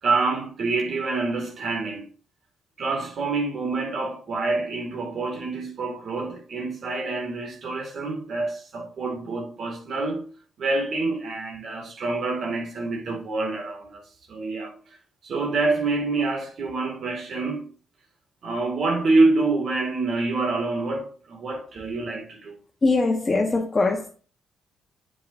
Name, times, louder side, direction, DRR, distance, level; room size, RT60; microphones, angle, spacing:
voice 1, 0.0-2.1 2.8-10.3 10.6-14.0 14.3-15.0 15.2-17.7 18.4-22.6, right 3 dB, 60° right, 2.2 m, -26 dB
voice 2, 22.8-24.1, left 3 dB, 30° left, 1.1 m, -22 dB
7.8 x 7.6 x 2.6 m
cardioid pair, 90°, 0 cm